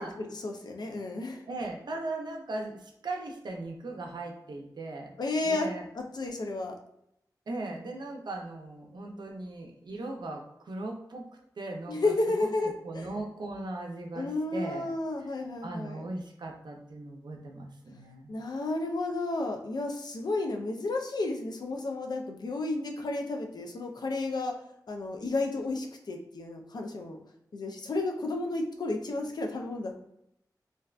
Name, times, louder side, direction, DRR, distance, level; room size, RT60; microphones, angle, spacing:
voice 1, 0.0-1.4 5.2-5.7 5.9-6.8 11.9-13.1 14.1-16.1 18.3-24.5 24.9-27.2 27.5-29.9, left 2 dB, 70° left, 3 dB, 0.4 m, -32 dB
voice 2, 1.5-5.1 5.4-5.8 7.5-11.3 11.6-12.1 12.4-12.5 12.8-14.9 15.6-18.3, right 2 dB, 80° right, 1 dB, 0.4 m, -38 dB
2.5 x 2.1 x 2.3 m, 0.76 s
wide cardioid pair, 75°, 7 cm